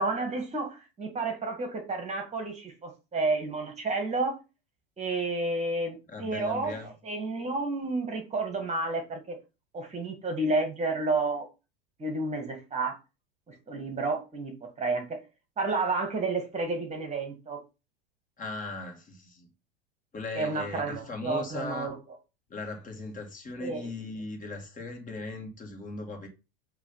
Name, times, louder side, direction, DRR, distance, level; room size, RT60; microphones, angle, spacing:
voice 1, 0.0-4.4 5.0-9.4 9.7-11.5 12.0-13.0 13.5-15.2 15.6-17.6 20.4-22.0 23.6-23.8, right 3 dB, 25° right, 1.8 m, -31 dB
voice 2, 6.1-6.9 18.4-19.5 20.1-21.9 22.5-26.3, left 3 dB, 25° left, 2.3 m, -38 dB
8.2 x 3.2 x 5.6 m
hypercardioid pair, 90°, 29 cm